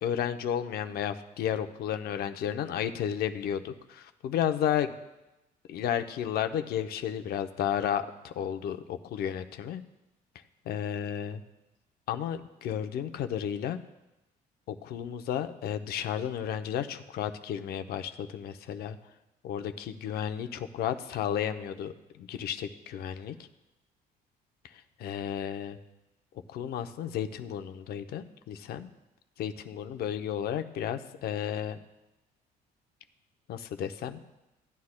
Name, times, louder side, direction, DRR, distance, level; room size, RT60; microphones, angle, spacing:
voice 1, 0.0-4.9 5.7-9.8 10.7-11.4 12.1-13.8 14.7-19.0 19.4-21.9 22.2-23.3 25.0-25.8 26.5-28.9 29.4-31.8 33.5-34.2, left 9 dB, 65° left, 8 dB, 0.7 m, -32 dB
16.0 x 9.6 x 2.2 m, 0.97 s
cardioid pair, 110°, 17 cm